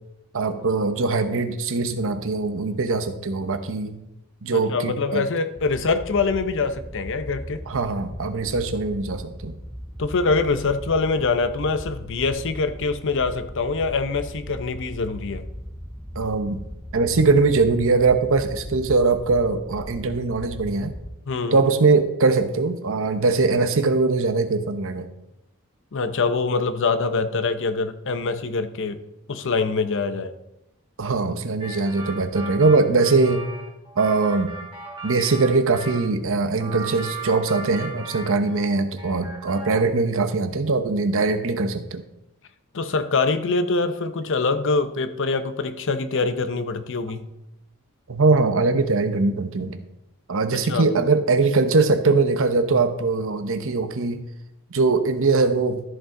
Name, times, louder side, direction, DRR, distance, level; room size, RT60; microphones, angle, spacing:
voice 1, 0.3-4.0 4.4-5.2 7.7-9.6 16.2-16.6 16.9-20.9 21.5-25.1 31.0-33.4 34.0-34.5 35.0-42.0 48.1-49.8 50.3-54.2 54.7-55.8, right 3 dB, 65° right, 9 dB, 0.8 m, -21 dB
voice 2, 4.5-7.6 10.0-15.5 21.3-21.6 25.9-29.0 29.3-30.3 42.7-47.3 50.5-50.9, left 4 dB, 60° left, 11 dB, 0.7 m, -24 dB
sound 1, 5.6-21.1, equal, ahead, 0.5 m, -38 dB
sound 2, 31.6-36.1 36.6-38.7 39.0-39.9, right 4 dB, 25° right, 1.9 m, -37 dB
13.5 x 5.4 x 3.8 m, 0.88 s
head